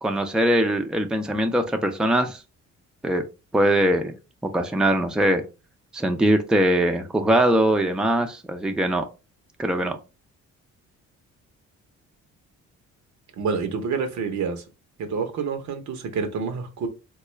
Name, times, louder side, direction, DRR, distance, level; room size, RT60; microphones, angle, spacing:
voice 1, 0.0-2.4 3.0-3.2 3.5-4.1 4.5-5.4 5.9-9.1 9.6-10.0, right 1 dB, 5° right, 0.5 m, -21 dB
voice 2, 13.4-14.6 15.0-16.9, right 5 dB, 70° right, 0.8 m, -28 dB
3.6 x 2.3 x 3.1 m
cardioid pair, 90°, 30 cm